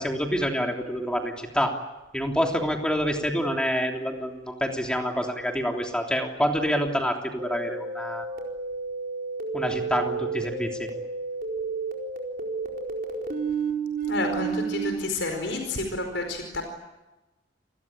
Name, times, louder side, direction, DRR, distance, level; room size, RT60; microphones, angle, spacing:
voice 1, 0.0-1.7 2.1-8.3 9.5-10.9, equal, 5° left, 2 dB, 3.2 m, -27 dB
sound 1, 7.4-14.9, right 4 dB, 50° right, 4.4 m, -31 dB
voice 2, 14.1-16.6, left 2 dB, 75° left, 5 dB, 4.8 m, -30 dB
28.5 x 21.0 x 8.9 m, 1.0 s
head